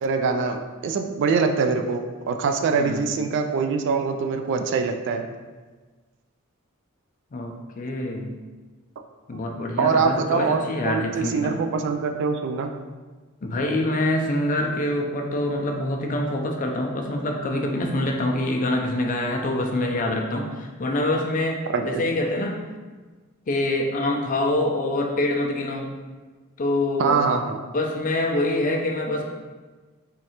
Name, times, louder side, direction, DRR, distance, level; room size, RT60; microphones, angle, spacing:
voice 1, 0.0-5.3 9.8-12.7 21.7-22.0 27.0-27.6, right 5 dB, 60° right, 6 dB, 0.3 m, -24 dB
voice 2, 7.3-8.3 9.3-11.6 13.4-22.6 23.5-25.9 26.6-27.2 27.7-29.2, left 1 dB, 40° left, 2 dB, 0.4 m, -25 dB
3.6 x 3.2 x 2.8 m, 1.3 s
head